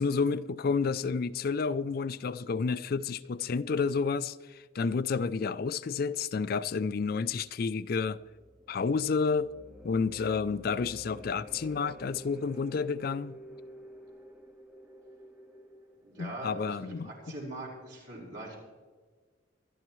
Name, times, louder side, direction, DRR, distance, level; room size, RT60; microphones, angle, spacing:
voice 1, 0.0-8.2 8.7-9.5 9.8-13.4 16.2-17.1, left 5 dB, 50° left, 0.4 m, -30 dB
sound 1, 8.0-17.2, equal, 5° right, 0.6 m, -51 dB
voice 2, 16.0-18.6, right 2 dB, 65° right, 4.9 m, -42 dB
24.5 x 11.0 x 3.1 m
head